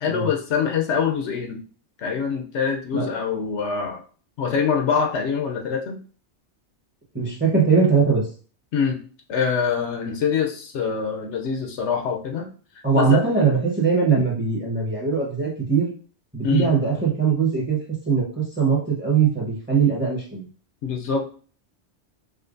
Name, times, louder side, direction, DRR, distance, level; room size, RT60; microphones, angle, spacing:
voice 1, 0.0-1.6 2.0-4.0 4.4-6.0 8.7-9.0 9.3-12.5 12.9-13.2 16.4-16.7 20.8-21.3, left 6 dB, 75° left, 2 dB, 0.9 m, -24 dB
voice 2, 7.1-8.2 12.8-15.9 16.3-20.5, right 5 dB, 10° right, -3 dB, 0.9 m, -21 dB
4.9 x 2.1 x 2.5 m, 0.41 s
omnidirectional pair, 1.2 m